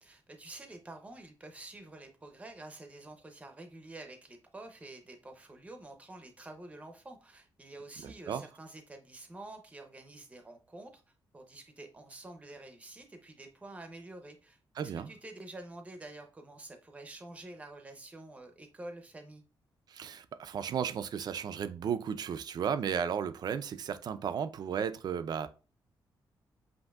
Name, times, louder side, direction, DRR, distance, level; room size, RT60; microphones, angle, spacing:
voice 1, 0.0-11.0 11.3-19.4, right 2 dB, 15° right, 0.7 m, -48 dB
voice 2, 8.0-8.4 14.8-15.1 19.9-25.5, right 7 dB, 55° right, 0.4 m, -34 dB
7.8 x 2.6 x 2.3 m
wide cardioid pair, 135°, 8 cm